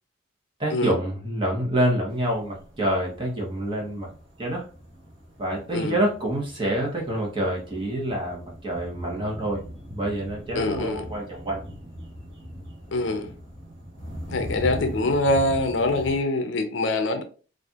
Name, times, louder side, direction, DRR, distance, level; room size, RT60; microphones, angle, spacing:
voice 1, 0.6-4.1 4.4-4.7 5.4-9.6 9.9-11.6, right 1 dB, 25° right, 0.9 m, -27 dB
sound 1, 2.1-16.2, equal, 65° right, 1.0 m, -40 dB
voice 2, 10.5-11.0 12.9-13.3 14.3-17.2, left 2 dB, 70° left, 0.5 m, -24 dB
4.1 x 2.5 x 2.3 m
head